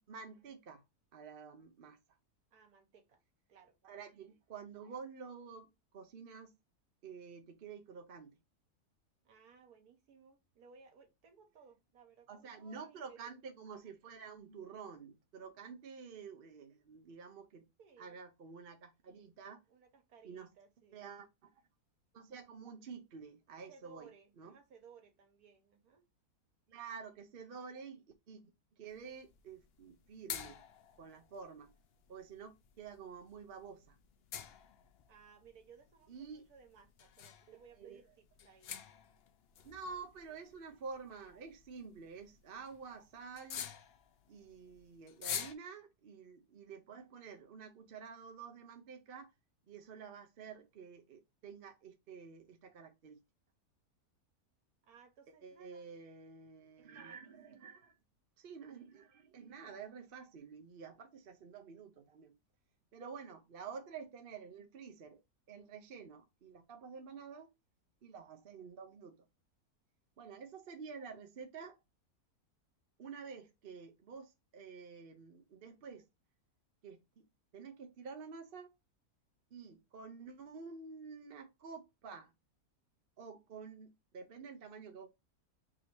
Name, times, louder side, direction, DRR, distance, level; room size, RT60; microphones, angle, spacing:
voice 1, 0.1-0.8 1.1-2.0 3.8-6.6 7.0-8.3 12.3-17.7 18.0-19.6 20.2-20.5 20.9-21.6 22.1-24.1 24.4-24.5 26.7-30.6 31.0-31.7 32.1-34.0 36.1-36.4 37.5-38.0 39.6-43.6 44.3-49.3 49.7-53.2 55.4-57.9 58.4-62.3 62.9-65.2 65.5-67.5 68.0-69.3 70.2-71.8 73.0-76.0 76.8-77.3 77.5-78.7 79.5-82.3 83.2-85.1, right 5 dB, 50° right, 0.7 m, -50 dB
voice 2, 2.5-3.2 3.5-3.8 9.2-13.5 17.8-18.2 19.7-21.2 23.7-26.1 35.1-38.7 54.8-55.9 56.8-57.8, right 6 dB, 75° right, 1.5 m, -61 dB
sound 1, 28.9-45.5, left 8 dB, 75° left, 0.5 m, -49 dB
3.6 x 2.7 x 4.4 m
omnidirectional pair, 1.6 m